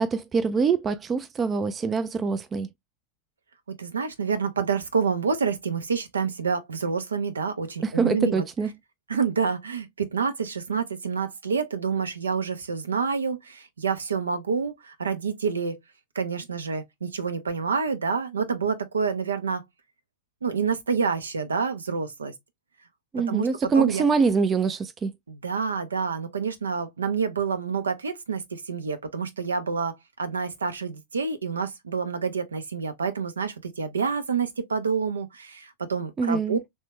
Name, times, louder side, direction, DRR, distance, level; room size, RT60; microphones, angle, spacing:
voice 1, 0.0-2.7 7.8-8.7 23.1-25.1 36.2-36.6, right 5 dB, 20° right, 0.4 m, -24 dB
voice 2, 3.8-8.4 9.1-15.8 16.1-19.6 20.4-22.3 23.3-23.5 23.7-24.0 25.3-36.6, right 5 dB, 75° right, 0.7 m, -28 dB
3.3 x 3.1 x 2.9 m
figure-of-eight pair, 90°, 0 cm